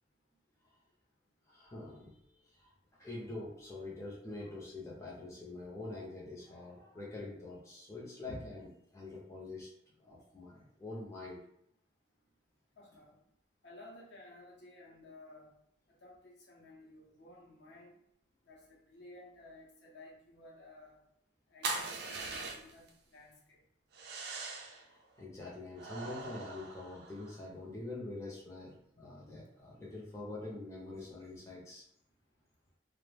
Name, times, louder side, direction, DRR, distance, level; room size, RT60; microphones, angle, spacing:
voice 1, 1.5-2.2 2.4-2.7 3.0-9.7 10.0-11.4 24.6-31.8, left 2 dB, 15° left, -5 dB, 0.5 m, -45 dB
voice 2, 12.8-13.2 13.6-15.5 15.9-18.0 18.4-21.0 21.5-23.6, left 2 dB, 60° left, -2 dB, 0.7 m, -55 dB
sound 1, 21.6-22.9 23.9-24.8 25.7-27.4, right 3 dB, 55° right, 0.4 m, -41 dB
2.2 x 2.0 x 3.2 m, 0.74 s
head